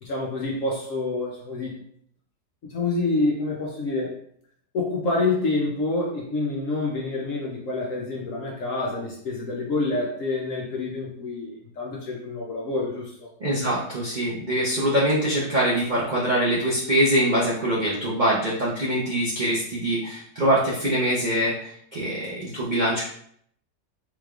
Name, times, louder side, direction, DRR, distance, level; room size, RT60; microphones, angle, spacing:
voice 1, 0.0-1.8 2.7-4.1 4.7-13.3, left 2 dB, 65° left, -3 dB, 0.8 m, -27 dB
voice 2, 13.4-23.0, right 1 dB, 60° right, -6 dB, 0.4 m, -23 dB
3.7 x 3.2 x 2.4 m, 0.66 s
omnidirectional pair, 1.9 m